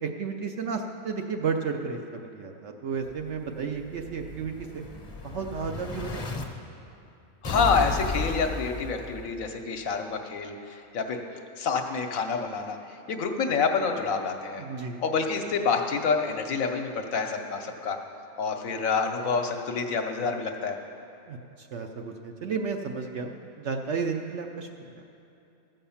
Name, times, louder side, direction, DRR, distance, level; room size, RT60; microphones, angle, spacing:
voice 1, 0.0-4.8 5.2-6.4 14.6-15.0 21.3-24.7 24.9-25.0, right 5 dB, 60° right, 3 dB, 0.8 m, -33 dB
Explosion, 3.1-6.4 7.4-9.5, left 3 dB, 35° left, 0.7 m, -34 dB
voice 2, 7.4-11.2 11.6-12.8 13.1-14.6 15.0-18.0 18.4-20.8, left 5 dB, 65° left, 4 dB, 1.2 m, -27 dB
14.5 x 5.6 x 7.1 m, 2.8 s
omnidirectional pair, 1.6 m